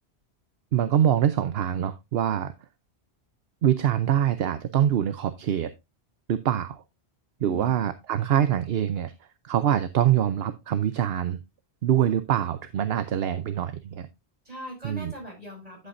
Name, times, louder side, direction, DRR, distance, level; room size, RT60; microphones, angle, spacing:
voice 1, 0.7-2.5 3.6-5.7 6.3-6.8 7.4-9.1 9.4-11.4 11.8-14.1 14.8-15.1, right 10 dB, 70° right, 0.9 m, -24 dB
voice 2, 7.4-7.9 14.5-15.9, left 1 dB, 35° right, 5.7 m, -41 dB
11.5 x 7.8 x 2.5 m
omnidirectional pair, 1.1 m